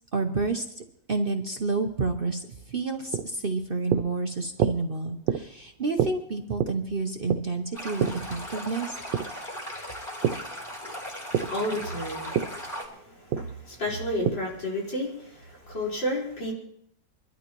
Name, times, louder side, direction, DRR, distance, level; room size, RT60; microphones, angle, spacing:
voice 1, 0.1-8.9, right 3 dB, 45° right, 5 dB, 0.8 m, -29 dB
sound 1, 2.6-10.5 10.8-14.7, right 9 dB, 85° right, 1.5 m, -30 dB
Stream, 7.7-12.8, equal, 10° left, 4.1 m, -38 dB
voice 2, 11.4-16.5, left 1 dB, 90° left, -4 dB, 5.3 m, -32 dB
25.0 x 12.5 x 3.0 m, 0.70 s
omnidirectional pair, 1.9 m